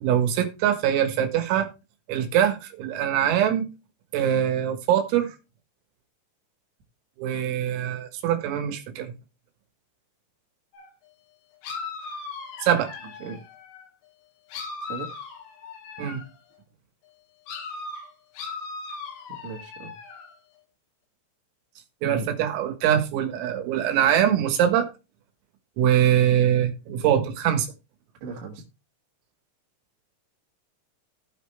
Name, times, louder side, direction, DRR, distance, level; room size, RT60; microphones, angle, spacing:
voice 1, 0.0-1.7 2.1-3.7 4.1-5.4 7.2-9.1 12.6-12.9 16.0-16.2 22.0-24.9 25.8-27.7, right 10 dB, 90° right, 4.2 m, -23 dB
sound 1, 10.7-10.9 11.6-13.9 14.5-16.4 17.5-20.3, left 4 dB, 90° left, 4.8 m, -38 dB
voice 2, 19.3-19.9 22.0-22.3 28.2-28.6, right 3 dB, 65° right, 3.7 m, -36 dB
16.5 x 5.6 x 3.3 m
omnidirectional pair, 5.9 m